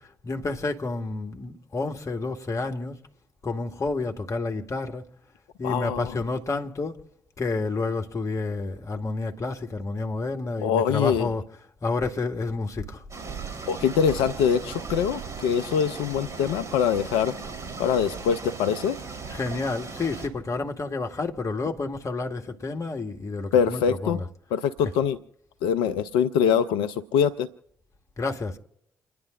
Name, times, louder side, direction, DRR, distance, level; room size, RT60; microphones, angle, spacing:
voice 1, 0.2-3.0 3.4-5.0 5.6-7.0 7.4-11.4 11.8-13.0 19.3-24.2 28.2-28.6, left 3 dB, 35° left, 1.4 m, -29 dB
voice 2, 5.6-6.2 10.6-11.3 13.7-17.3 17.8-19.0 23.5-24.2 24.5-25.2 25.6-27.5, left 7 dB, 70° left, 0.4 m, -24 dB
sound 1, 13.1-20.3, right 4 dB, 35° right, 3.6 m, -37 dB
28.5 x 10.0 x 2.5 m
hypercardioid pair, 40°, 9 cm